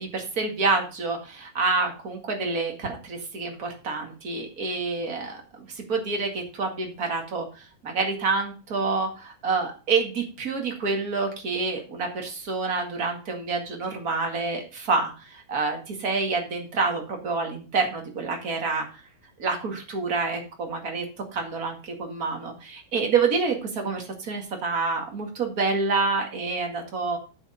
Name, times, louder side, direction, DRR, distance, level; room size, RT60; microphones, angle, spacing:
voice 1, 0.0-5.4 5.7-7.5 7.8-18.9 19.4-21.0 21.3-27.2, right 4 dB, 35° right, 2 dB, 1.6 m, -27 dB
8.6 x 6.8 x 5.0 m, 0.33 s
omnidirectional pair, 4.4 m